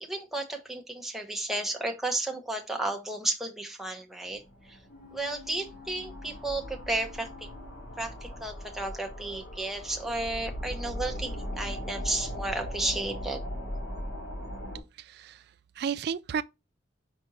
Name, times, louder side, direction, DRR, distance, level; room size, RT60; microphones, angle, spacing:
voice 1, 0.0-4.4 4.7-4.8 5.1-7.5 8.0-13.4, right 2 dB, ahead, 1.1 m, -33 dB
sound 1, 4.3-14.8, equal, 85° left, 2.3 m, -39 dB
sound 2, 4.9-8.7 9.0-9.1, left 7 dB, 40° left, 1.9 m, -52 dB
voice 2, 14.9-15.5 15.8-16.4, right 7 dB, 55° right, 0.3 m, -32 dB
6.0 x 4.5 x 4.0 m
head